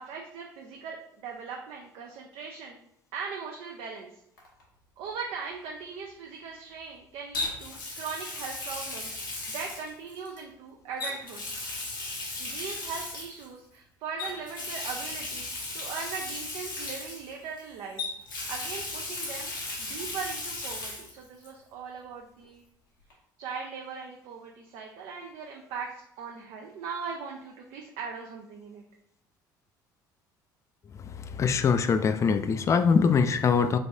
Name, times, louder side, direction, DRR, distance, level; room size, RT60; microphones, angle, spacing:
voice 1, 0.0-2.8 3.1-4.1 5.0-9.2 9.5-11.4 12.4-18.0 18.5-19.5 19.8-22.6 23.4-28.8, right 5 dB, 60° right, 0 dB, 0.5 m, -39 dB
Water tap faucet, 4.4-4.6 7.3-10.4 11.0-13.5 14.2-17.6 18.0-21.1 21.4-21.5 23.1-23.2, left 2 dB, 90° left, 0.9 m, -36 dB
voice 2, 31.4-33.8, left 5 dB, 30° left, 10 dB, 0.3 m, -23 dB
3.3 x 3.2 x 2.7 m, 0.76 s
hypercardioid pair, 60°, 11 cm